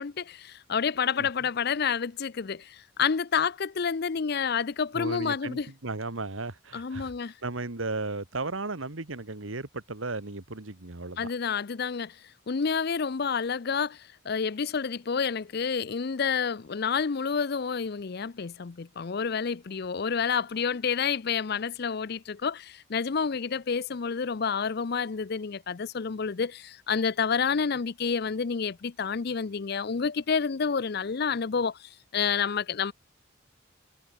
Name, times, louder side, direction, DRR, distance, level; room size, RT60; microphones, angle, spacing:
voice 1, 0.0-5.7 6.7-7.3 11.2-12.1 12.5-14.0 14.3-31.8 32.1-32.9, left 6 dB, 50° left, 0.5 m, -29 dB
voice 2, 1.2-1.5 4.9-11.3, right 3 dB, 80° right, 1.9 m, -35 dB
head